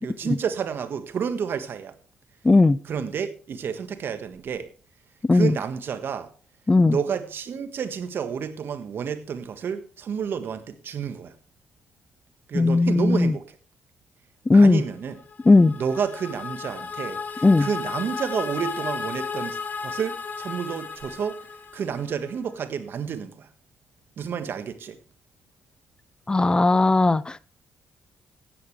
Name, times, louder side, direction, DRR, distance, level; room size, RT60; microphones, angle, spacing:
voice 1, 0.0-1.9 2.9-4.7 5.3-6.3 6.8-11.3 12.5-13.4 14.5-15.2 15.7-21.5 21.7-23.5 24.2-25.0, right 7 dB, 60° right, 1.6 m, -30 dB
voice 2, 2.4-2.8 5.3-5.5 6.7-7.0 12.5-13.4 14.5-14.8 15.4-15.7 17.4-17.7 26.3-27.4, left 3 dB, 20° left, 0.5 m, -17 dB
sound 1, 15.2-22.3, left 5 dB, 45° left, 2.2 m, -34 dB
15.5 x 10.5 x 3.4 m
supercardioid pair, 70°, 4 cm